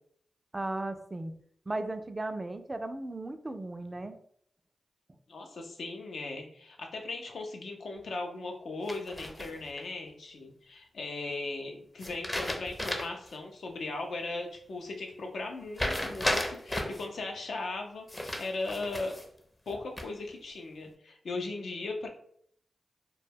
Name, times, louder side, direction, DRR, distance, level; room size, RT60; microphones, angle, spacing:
voice 1, 0.5-1.3 1.7-4.2, right 2 dB, 30° right, 8 dB, 0.3 m, -36 dB
voice 2, 5.3-19.2 19.7-22.1, left 3 dB, 75° left, 2 dB, 0.5 m, -38 dB
sound 1, 8.9-9.8 12.0-13.3 13.7-13.8 15.8-17.1 18.1-19.3 19.7-20.3, left 1 dB, 25° left, 0.5 m, -34 dB
2.2 x 2.2 x 3.3 m, 0.64 s
supercardioid pair, 40°, 0 cm